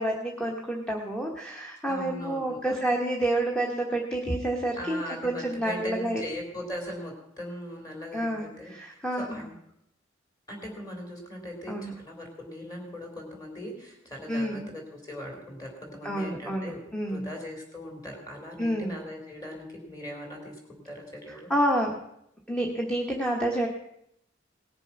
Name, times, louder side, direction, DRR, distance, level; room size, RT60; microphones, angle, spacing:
voice 1, 0.0-6.2 8.1-9.4 11.7-11.9 14.3-14.7 16.0-17.3 18.6-18.9 21.5-22.0 22.5-23.7, right 1 dB, 5° left, 0 dB, 1.2 m, -29 dB
voice 2, 1.9-2.8 4.8-9.6 10.5-16.8 17.1-21.5, left 1 dB, 20° left, 1 dB, 3.6 m, -40 dB
18.5 x 6.9 x 5.9 m, 0.78 s
head